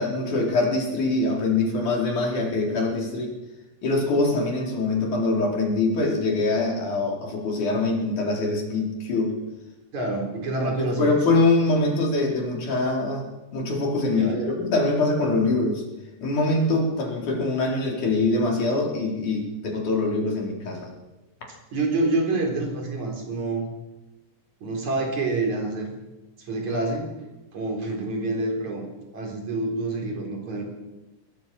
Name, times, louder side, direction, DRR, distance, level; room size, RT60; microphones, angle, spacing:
voice 1, 0.0-3.3 3.8-9.3 10.6-13.2 13.5-15.8 16.2-20.9, left 2 dB, 65° left, 0 dB, 5.8 m, -24 dB
voice 2, 9.9-11.1 14.1-14.5 21.7-23.7 24.6-25.9 26.4-27.1 27.5-28.8 29.1-30.7, right 2 dB, 60° right, 2 dB, 5.5 m, -27 dB
22.0 x 20.5 x 6.3 m, 1.0 s
omnidirectional pair, 3.8 m